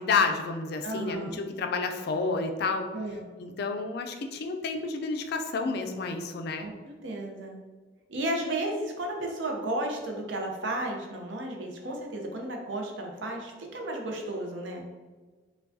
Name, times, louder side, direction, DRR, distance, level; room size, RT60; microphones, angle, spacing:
voice 1, 0.0-2.9 3.4-6.7, left 4 dB, 60° left, 5 dB, 0.4 m, -30 dB
voice 2, 0.8-1.4 2.9-3.3 6.6-7.6 8.1-14.9, right 1 dB, 85° right, 1 dB, 0.6 m, -33 dB
4.5 x 2.3 x 2.6 m, 1.4 s
head